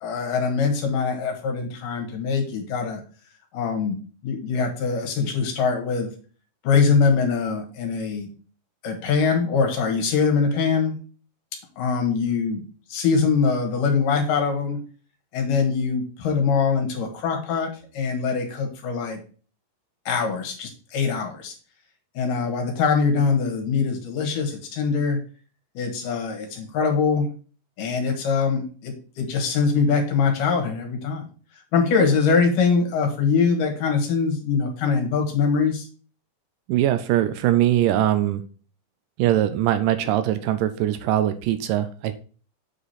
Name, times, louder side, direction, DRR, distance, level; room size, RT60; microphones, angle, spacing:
voice 1, 0.0-3.0 3.5-6.1 6.6-8.3 8.8-10.9 11.8-12.6 12.9-14.8 15.3-19.2 20.1-21.5 22.1-25.2 25.7-27.3 27.8-31.3 31.7-35.9, left 5 dB, 75° left, 3 dB, 3.1 m, -23 dB
voice 2, 36.7-38.4 39.2-42.1, right 12 dB, 85° right, 11 dB, 2.2 m, -21 dB
7.5 x 4.9 x 4.2 m, 0.40 s
omnidirectional pair, 3.8 m